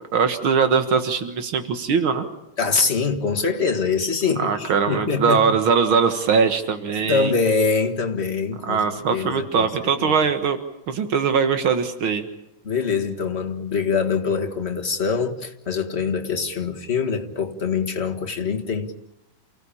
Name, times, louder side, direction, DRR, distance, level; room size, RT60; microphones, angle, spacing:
voice 1, 0.1-2.2 4.4-7.3 8.7-10.6 10.9-12.3, right 6 dB, 85° right, 2.4 m, -21 dB
voice 2, 2.6-5.6 7.0-10.2 12.6-18.9, left 5 dB, 35° left, 1.9 m, -24 dB
29.0 x 16.0 x 8.6 m
omnidirectional pair, 2.2 m